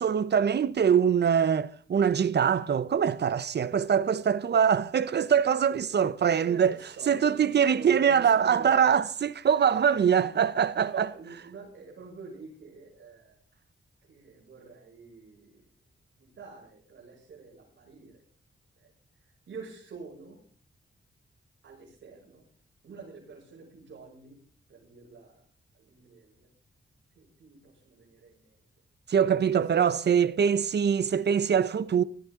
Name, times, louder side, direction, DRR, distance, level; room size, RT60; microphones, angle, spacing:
voice 1, 0.0-6.8 7.1-11.1 29.1-32.0, right 7 dB, 65° right, 0.9 m, -23 dB
voice 2, 5.9-8.7 9.5-10.3 10.8-13.4 14.1-15.7 16.2-18.2 18.8-18.9 19.5-20.4 21.6-22.4 22.8-24.4 24.7-25.4 25.7-26.5 27.2-28.6 29.4-29.9 30.1-30.3, right 5 dB, 90° right, 6.9 m, -46 dB
19.0 x 14.0 x 3.8 m
wide cardioid pair, 105°, 19 cm